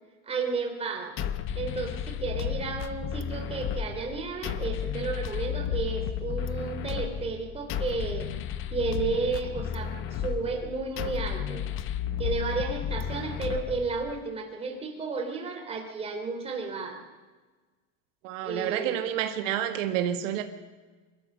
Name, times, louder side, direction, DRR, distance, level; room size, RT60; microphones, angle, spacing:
voice 1, 0.3-1.2 1.5-8.3 8.7-11.6 12.2-17.0 18.4-19.0, right 4 dB, 15° right, 3.2 m, -32 dB
sound 1, 1.2-14.2, left 9 dB, 35° left, 0.8 m, -33 dB
voice 2, 18.2-20.4, right 11 dB, 75° right, 1.8 m, -29 dB
24.0 x 13.0 x 8.5 m
supercardioid pair, 165°, 38 cm